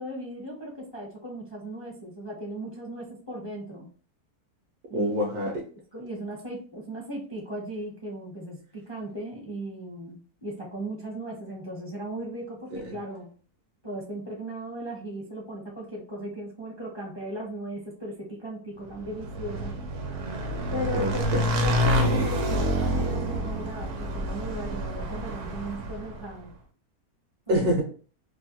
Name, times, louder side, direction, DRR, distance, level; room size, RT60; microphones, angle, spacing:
voice 1, 0.0-3.9 4.9-5.1 5.9-13.3 13.8-19.8 20.7-26.5 27.5-27.6, right 1 dB, 30° left, -2 dB, 0.5 m, -37 dB
voice 2, 4.9-5.6 12.7-12.9 20.9-21.4 27.5-27.8, equal, 80° right, 0 dB, 1.3 m, -26 dB
Motorcycle / Engine, 19.0-26.3, equal, 65° right, 0.9 m, -28 dB
3.1 x 2.2 x 2.8 m, 0.40 s
omnidirectional pair, 1.6 m